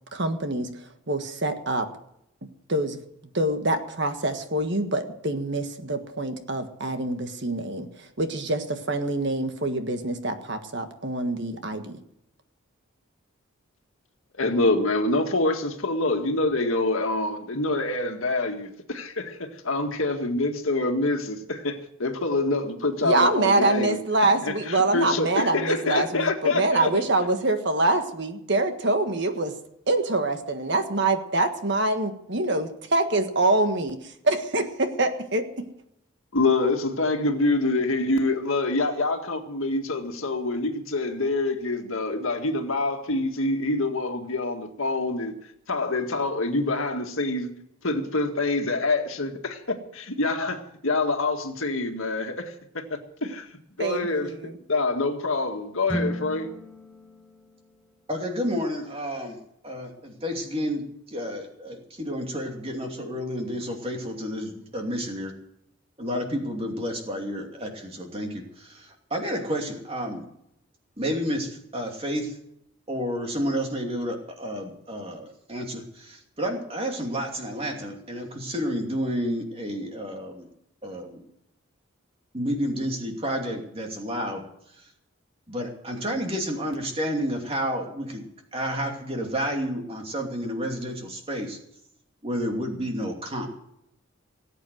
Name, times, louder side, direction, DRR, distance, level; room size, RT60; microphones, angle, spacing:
voice 1, 0.1-1.9 2.7-3.0 3.3-12.0 23.0-29.5 29.9-35.7 53.8-54.6, right 2 dB, 55° right, 1.6 m, -25 dB
voice 2, 14.3-24.0 24.4-27.0 36.3-45.3 45.7-47.5 47.8-53.5 53.8-54.3 54.7-56.5, left 2 dB, 70° left, 1.9 m, -26 dB
sound 1, 55.9-58.3, equal, 5° left, 0.9 m, -35 dB
voice 3, 58.1-59.4 59.6-65.3 66.0-70.3 71.0-72.4 72.9-80.5 80.8-81.2 82.3-84.4 84.8-84.9 85.5-88.3 88.5-91.6 92.2-93.5, equal, 25° right, 2.7 m, -30 dB
18.5 x 8.6 x 7.9 m
head